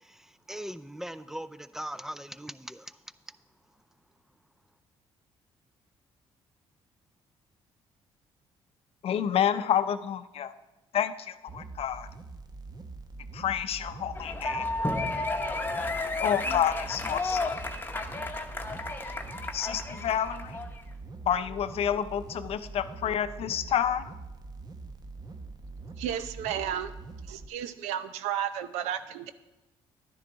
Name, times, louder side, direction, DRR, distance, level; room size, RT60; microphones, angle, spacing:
voice 1, 0.0-3.0 3.3-3.4, right 1 dB, 5° right, 15 dB, 0.5 m, -40 dB
voice 2, 9.0-10.5 10.9-12.1 13.3-14.7 16.2-17.5 19.5-20.6 21.3-24.1, left 9 dB, 60° left, 12 dB, 0.6 m, -29 dB
sound 1, 11.5-27.5, right 3 dB, 35° right, 1.0 m, -44 dB
sound 2, 14.1-20.8, left 2 dB, 20° left, 1.0 m, -32 dB
voice 3, 26.0-26.9 27.3-29.3, right 10 dB, 90° right, 12 dB, 0.6 m, -33 dB
11.0 x 10.0 x 3.9 m, 1.0 s
supercardioid pair, 75°, 11 cm